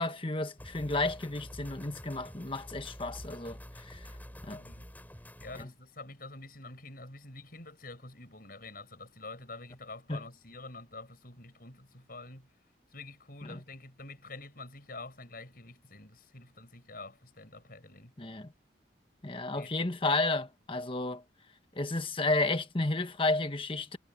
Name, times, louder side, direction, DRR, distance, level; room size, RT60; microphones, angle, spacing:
voice 1, 0.0-4.1 4.4-4.6 10.1-10.2 18.2-18.5 19.2-21.2 21.7-24.0, left 2 dB, 30° left, 1.3 m, -32 dB
sound 1, 0.6-5.7, equal, 10° left, 6.1 m, -47 dB
voice 2, 4.4-4.9 5.4-12.5 12.9-18.2 19.5-19.7, left 3 dB, 50° left, 6.6 m, -47 dB
head